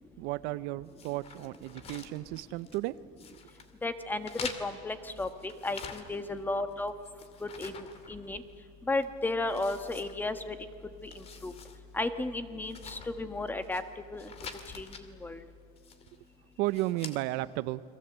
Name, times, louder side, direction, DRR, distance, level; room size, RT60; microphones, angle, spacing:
voice 1, 0.2-2.9 16.6-17.8, right 17 dB, 60° right, 16 dB, 0.7 m, -33 dB
sound 1, 1.0-2.9 3.2-3.7 4.2-6.4 6.7-8.6 9.0-9.1 9.5-10.6 11.0-11.8 12.1-12.2 12.6-13.8 14.2-15.0 15.8-16.2 16.6-17.2, left 6 dB, 30° left, 2.3 m, -46 dB
voice 2, 3.8-4.3 4.6-6.9 7.4-8.4 8.9-10.6 11.0-11.5 11.9-13.8 14.1-14.3 14.7-14.9 15.2-15.4, left 2 dB, 10° left, 9 dB, 1.4 m, -34 dB
29.5 x 22.5 x 8.0 m, 2.4 s
supercardioid pair, 140°, 20 cm